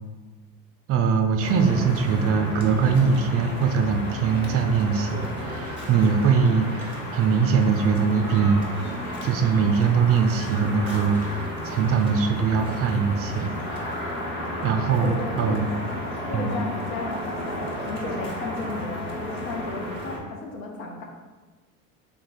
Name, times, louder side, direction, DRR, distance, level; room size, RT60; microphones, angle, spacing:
voice 1, 0.9-8.6 9.2-13.5 14.6-15.7 16.3-16.6, right 5 dB, 35° right, 5 dB, 0.4 m, -22 dB
sound 1, 1.4-20.2, left 1 dB, 25° left, 1.2 m, -33 dB
sound 2, 2.8-13.8, equal, 5° left, 1.1 m, -45 dB
voice 2, 15.0-15.9 16.3-21.0, left 3 dB, 70° left, 1 dB, 1.0 m, -34 dB
3.4 x 3.2 x 4.0 m, 1.2 s
hypercardioid pair, 80°, 42 cm